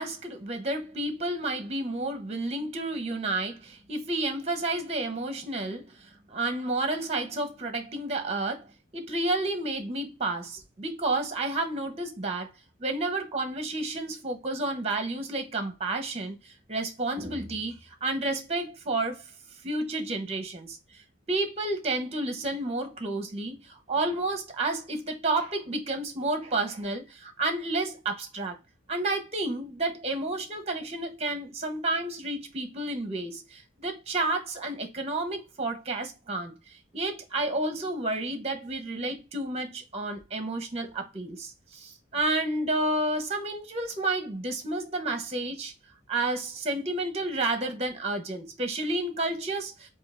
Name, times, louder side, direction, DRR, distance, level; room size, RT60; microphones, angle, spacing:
voice 1, 0.0-8.7 8.9-12.5 12.8-16.4 16.7-19.2 19.6-21.0 21.3-28.6 28.9-36.5 36.9-45.7 46.1-49.9, right 2 dB, 35° right, 1.1 m, -31 dB
3.7 x 2.8 x 3.6 m
head